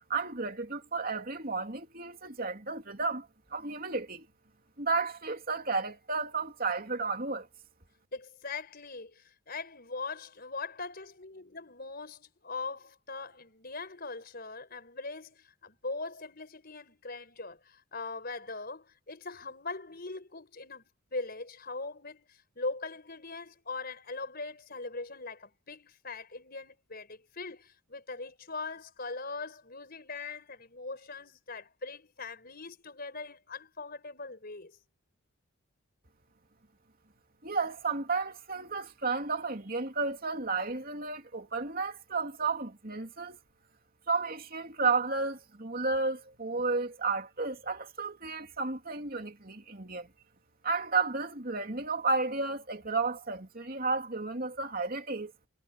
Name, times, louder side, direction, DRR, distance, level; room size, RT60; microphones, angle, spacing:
voice 1, 0.1-4.3 4.8-7.5 37.4-43.4 44.1-50.1 50.6-55.3, right 4 dB, 40° right, 3.1 m, -32 dB
voice 2, 8.1-34.8, left 3 dB, 45° left, 4.9 m, -41 dB
head